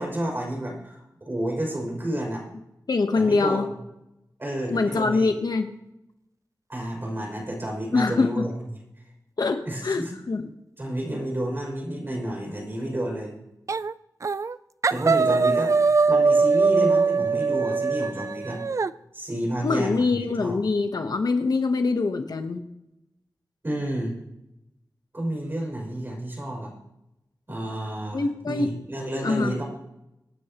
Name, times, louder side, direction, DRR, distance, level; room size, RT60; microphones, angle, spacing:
voice 1, 0.0-2.5 3.1-3.6 4.4-5.3 6.7-8.5 9.6-10.1 10.8-13.3 14.9-15.8 16.1-18.6 19.1-20.6 23.6-24.2 25.1-26.7 27.5-29.6, right 1 dB, 30° right, -1 dB, 6.1 m, -30 dB
voice 2, 2.9-3.7 4.7-5.7 7.9-8.5 9.4-10.4 19.6-22.7 28.1-28.8 29.2-29.6, left 3 dB, 65° left, 6 dB, 1.1 m, -24 dB
sound 1, 13.7-13.9 14.2-14.6 14.8-18.9, right 4 dB, 45° right, 0.4 m, -21 dB
25.5 x 9.9 x 3.0 m, 0.88 s
wide cardioid pair, 105°, 7 cm